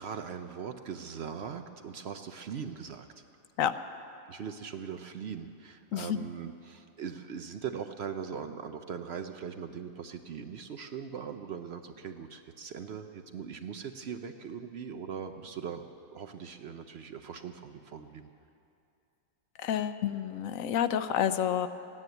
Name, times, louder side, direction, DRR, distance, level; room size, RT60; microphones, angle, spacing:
voice 1, 0.0-3.1 4.3-18.3, right 7 dB, 60° right, 7 dB, 0.7 m, -40 dB
voice 2, 19.6-21.7, left 9 dB, 75° left, 11 dB, 1.0 m, -29 dB
14.5 x 9.8 x 9.2 m, 2.6 s
omnidirectional pair, 1.5 m